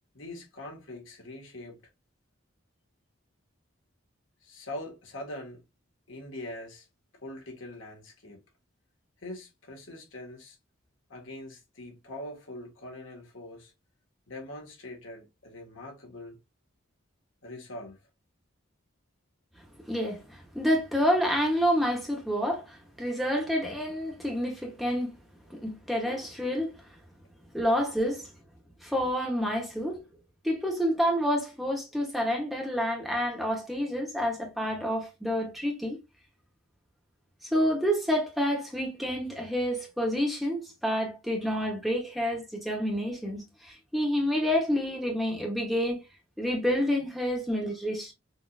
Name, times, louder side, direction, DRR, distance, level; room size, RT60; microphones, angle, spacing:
voice 1, 0.1-1.8 4.4-5.6 6.1-6.9 7.2-8.4 9.2-10.6 11.1-13.7 14.3-16.4 17.4-18.0, left 1 dB, 80° left, 1.8 m, -42 dB
voice 2, 19.8-25.1 25.5-26.7 27.5-28.3 28.8-30.0 30.4-36.0 37.4-46.0 46.4-48.1, equal, ahead, 1.1 m, -28 dB
6.3 x 2.8 x 2.5 m
head